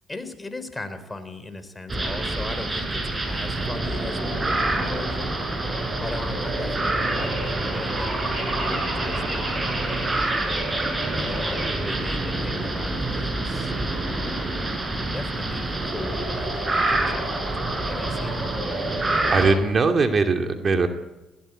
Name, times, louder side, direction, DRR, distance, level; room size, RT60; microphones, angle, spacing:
voice 1, 0.1-3.0 3.3-5.4 6.0-10.6 11.2-14.7 15.1-18.4, left 2 dB, 15° left, 9 dB, 3.7 m, -38 dB
sound 1, 1.9-19.6, right 2 dB, 25° right, 6.2 m, -26 dB
voice 2, 19.3-20.9, right 4 dB, 40° right, 5 dB, 2.5 m, -20 dB
20.5 x 18.0 x 9.0 m, 1.0 s
supercardioid pair, 75°, 0 cm